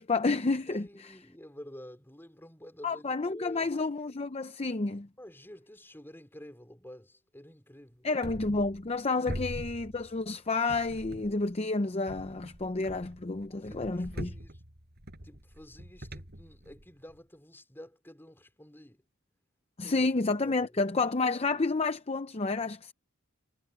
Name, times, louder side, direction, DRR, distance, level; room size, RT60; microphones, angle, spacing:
voice 1, 0.0-0.9 2.8-5.1 8.0-14.3 19.8-22.9, left 3 dB, 30° left, 0.6 m, -30 dB
voice 2, 0.7-3.7 5.2-8.1 9.1-9.4 13.5-14.6 15.2-19.0 19.8-20.1 20.4-20.8, equal, 10° left, 4.5 m, -50 dB
sound 1, 8.2-9.0 9.3-10.3 10.7-11.5 12.1-17.2, equal, 50° right, 6.4 m, -43 dB
head